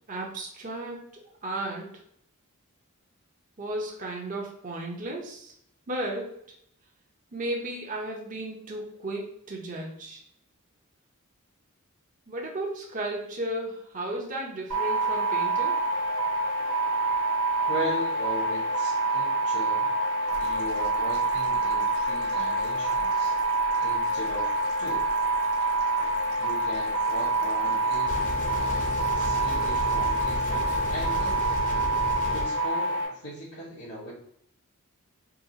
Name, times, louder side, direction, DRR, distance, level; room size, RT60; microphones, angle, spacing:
voice 1, 0.1-1.9 3.6-5.5 5.9-6.3 7.3-10.2 12.3-15.8, right 1 dB, 35° right, -1 dB, 0.6 m, -34 dB
sound 1, 14.7-33.0, right 2 dB, 55° right, 1.2 m, -26 dB
voice 2, 17.7-19.9 20.4-23.3 23.8-24.5 24.8-25.0 26.4-28.1 28.5-31.5 32.3-34.1, equal, 80° left, -10 dB, 1.3 m, -38 dB
sound 2, 20.3-31.6, right 1 dB, 85° right, 0.9 m, -46 dB
sound 3, 28.1-32.5, equal, 35° left, 0.5 m, -33 dB
3.8 x 2.3 x 2.8 m, 0.70 s
head